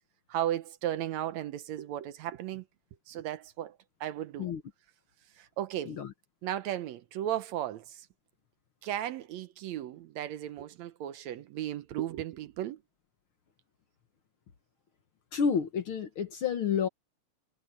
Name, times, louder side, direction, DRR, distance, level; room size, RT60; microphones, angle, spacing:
voice 1, 0.3-2.7 3.1-4.5 5.4-6.0 6.4-8.1 8.8-12.8, right 12 dB, 75° right, 2.0 m, -35 dB
voice 2, 15.3-16.9, left 7 dB, 55° left, 1.7 m, -29 dB
omnidirectional pair, 3.4 m